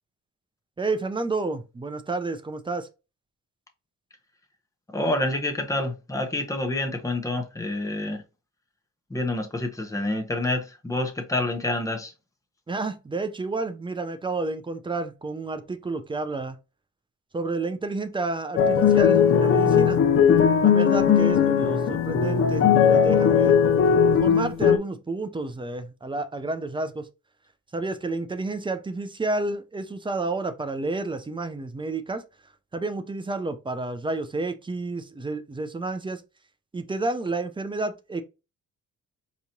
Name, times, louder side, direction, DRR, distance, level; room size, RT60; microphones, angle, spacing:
voice 1, 0.8-2.9 12.7-16.6 17.3-20.0 20.6-23.6 24.0-27.1 27.7-32.2 32.7-36.2 36.7-38.2, right 3 dB, 15° right, 0.5 m, -30 dB
voice 2, 4.9-8.2 9.1-12.1, left 2 dB, 10° left, 0.9 m, -28 dB
sound 1, 18.6-24.8, left 7 dB, 40° left, 0.5 m, -18 dB
4.7 x 3.0 x 2.7 m
cardioid pair, 110°, 33 cm